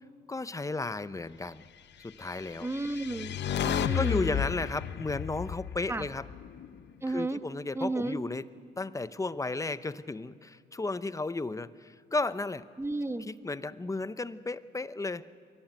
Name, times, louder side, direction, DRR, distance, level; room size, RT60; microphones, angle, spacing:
voice 1, 0.3-1.7 2.0-2.7 3.9-6.3 7.1-8.5 8.8-12.7 13.2-15.3, left 3 dB, 15° left, 15 dB, 0.7 m, -34 dB
sound 1, 2.5-6.8, left 9 dB, 60° left, 0.8 m, -33 dB
voice 2, 2.6-3.4 3.6-4.4 5.9-6.0 7.0-7.4 7.7-8.2 12.8-13.3, right 2 dB, 15° right, 10 dB, 1.2 m, -32 dB
23.0 x 16.5 x 9.1 m, 2.3 s
cardioid pair, 90°, 20 cm